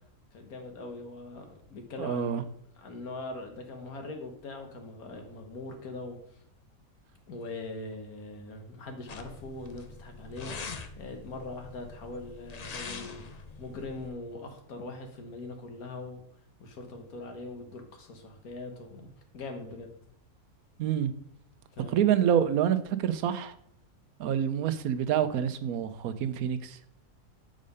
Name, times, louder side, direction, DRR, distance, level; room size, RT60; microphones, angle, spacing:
voice 1, 0.3-2.5 2.8-6.2 7.3-16.2 16.6-19.9 21.7-22.0, left 2 dB, 85° left, 1.8 m, -41 dB
voice 2, 2.0-2.4 20.8-21.1 21.9-23.5 24.2-26.8, right 9 dB, 85° right, 1.1 m, -27 dB
sound 1, 9.1-14.1, left 4 dB, 50° left, 0.5 m, -43 dB
6.4 x 5.0 x 5.4 m
omnidirectional pair, 1.5 m